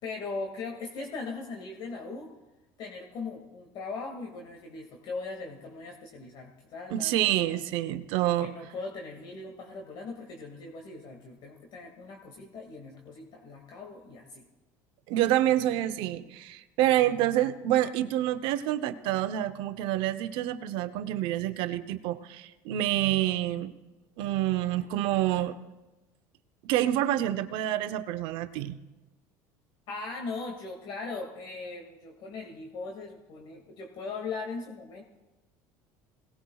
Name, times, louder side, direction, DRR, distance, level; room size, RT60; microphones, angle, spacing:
voice 1, 0.0-2.3 2.8-7.5 8.2-14.4 29.9-35.0, left 3 dB, 60° left, 1 dB, 2.2 m, -39 dB
voice 2, 6.9-8.5 15.1-23.7 24.2-25.6 26.6-28.8, right 13 dB, 70° right, 10 dB, 0.8 m, -27 dB
21.0 x 18.0 x 2.4 m, 1.1 s
supercardioid pair, 90°, 9 cm